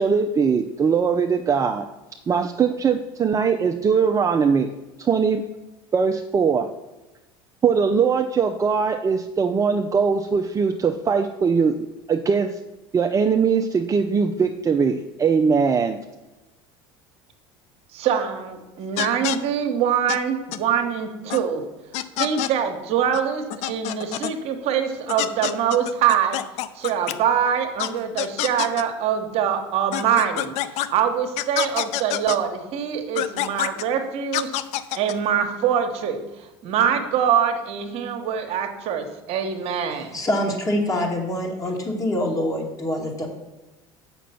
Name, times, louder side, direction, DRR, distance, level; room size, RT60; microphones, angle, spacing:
voice 1, 0.0-1.9 2.3-4.7 5.0-5.5 5.9-6.7 7.6-11.8 12.1-12.5 12.9-16.0, right 6 dB, 25° right, 5 dB, 0.5 m, -21 dB
voice 2, 17.9-21.6 22.2-26.4 26.7-34.6 35.0-40.2, right 8 dB, 60° right, 5 dB, 1.1 m, -24 dB
sound 1, 19.0-19.4 20.1-20.2 20.5-20.6 21.3-21.4 21.9-22.5 23.1-23.2 23.5-24.3 25.1-27.1 27.8-27.9 28.2-28.8 29.9-30.9 31.4-32.4 33.2-33.8 34.3-35.1, left 13 dB, 65° left, 0.5 m, -26 dB
voice 3, 40.1-43.3, left 1 dB, 30° left, 0 dB, 2.4 m, -25 dB
7.2 x 6.1 x 5.7 m, 1.1 s
supercardioid pair, 90°, 12 cm